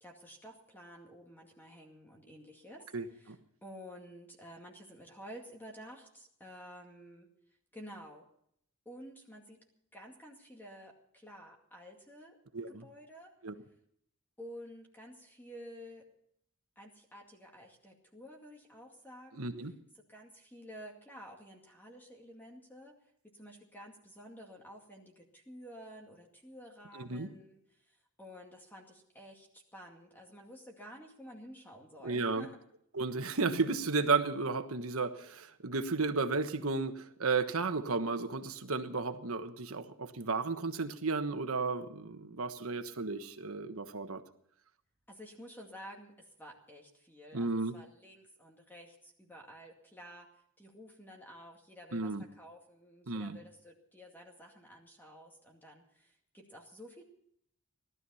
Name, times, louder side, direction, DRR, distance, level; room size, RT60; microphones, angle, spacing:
voice 1, 0.0-3.3 3.6-7.3 7.7-8.3 8.9-9.6 9.9-12.4 12.7-13.3 14.4-16.1 16.8-19.5 20.1-23.0 23.2-32.6 45.1-57.0, equal, 10° left, 0 dB, 2.2 m, -51 dB
voice 2, 2.9-3.4 12.5-12.8 13.4-13.5 19.3-19.7 26.9-27.3 32.0-32.4 32.9-44.2 47.3-47.7 51.9-52.2 53.1-53.4, right 4 dB, 75° right, 8 dB, 1.3 m, -33 dB
17.5 x 12.5 x 5.6 m, 0.70 s
head